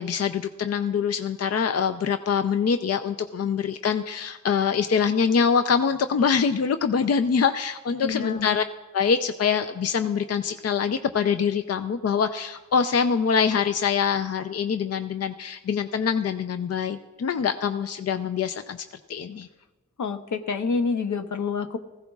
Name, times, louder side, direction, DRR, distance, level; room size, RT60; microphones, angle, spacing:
voice 1, 0.0-8.6 8.9-19.5, left 6 dB, 55° left, 9 dB, 0.5 m, -24 dB
voice 2, 8.0-8.5 20.0-21.8, left 5 dB, 70° left, 8 dB, 0.9 m, -27 dB
20.0 x 15.5 x 2.4 m, 1.1 s
cardioid pair, 60°, 30 cm